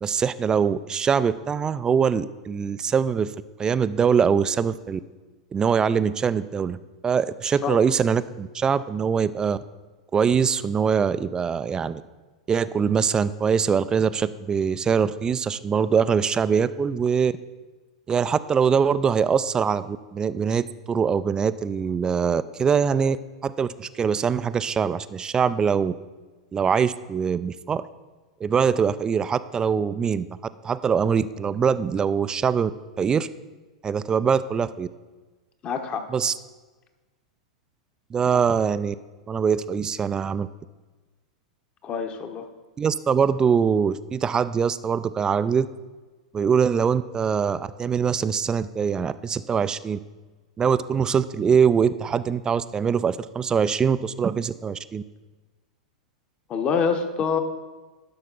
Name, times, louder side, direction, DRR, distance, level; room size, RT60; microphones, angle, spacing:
voice 1, 0.0-3.3 3.6-5.0 5.5-6.8 7.0-9.6 10.1-12.0 12.5-17.3 18.1-23.2 23.4-25.9 26.5-27.8 28.4-30.4 30.6-32.7 33.0-33.3 33.8-34.9 36.1-36.3 38.1-39.0 39.3-40.5 42.8-45.7 46.3-50.0 50.6-55.0, right 6 dB, 20° right, 15 dB, 0.3 m, -23 dB
voice 2, 35.6-36.1 38.3-38.4 41.8-42.5 56.5-57.4, left 6 dB, 30° left, 6 dB, 1.0 m, -26 dB
11.5 x 5.8 x 4.0 m, 1.3 s
hypercardioid pair, 100°, 4 cm